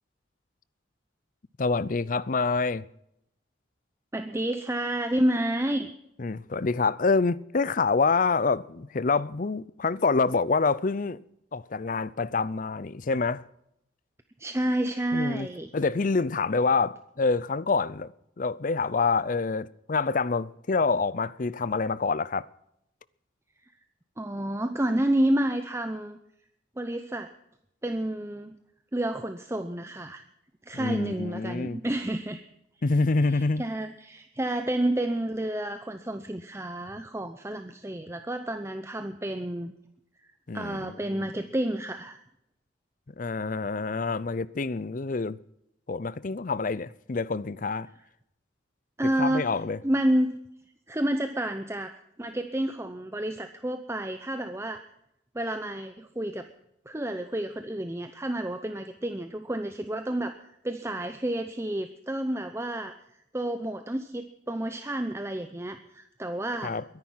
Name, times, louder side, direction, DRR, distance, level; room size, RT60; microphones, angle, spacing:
voice 1, 1.6-2.8 6.2-11.2 11.5-13.4 15.1-15.5 15.7-18.1 18.4-22.5 30.7-31.8 32.8-33.6 40.5-41.3 43.2-45.4 45.9-47.9 49.0-49.8 66.6-66.8, left 4 dB, 40° left, 0.5 m, -27 dB
voice 2, 4.1-5.9 14.4-15.7 23.6-23.7 24.2-26.2 26.8-27.3 27.8-28.6 28.9-30.2 30.6-32.4 33.3-39.7 40.2-42.2 49.0-49.5 49.8-50.4 50.9-54.8 55.3-56.5 56.9-60.4 60.6-63.0 63.3-66.8, right 1 dB, 15° right, 0.7 m, -30 dB
22.5 x 10.5 x 5.7 m
head